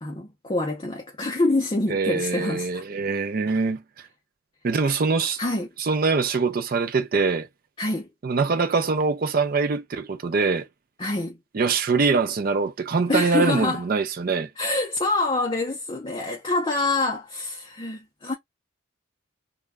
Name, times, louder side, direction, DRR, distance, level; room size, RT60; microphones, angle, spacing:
voice 1, 0.0-2.8 5.4-5.7 7.8-8.1 11.0-11.4 13.1-13.8 14.6-18.3, left 2 dB, 25° left, 0.5 m, -26 dB
voice 2, 1.9-4.1 4.6-5.4 5.8-7.5 8.2-10.7 11.5-14.5, right 4 dB, 45° right, 0.4 m, -23 dB
2.1 x 2.1 x 3.4 m
head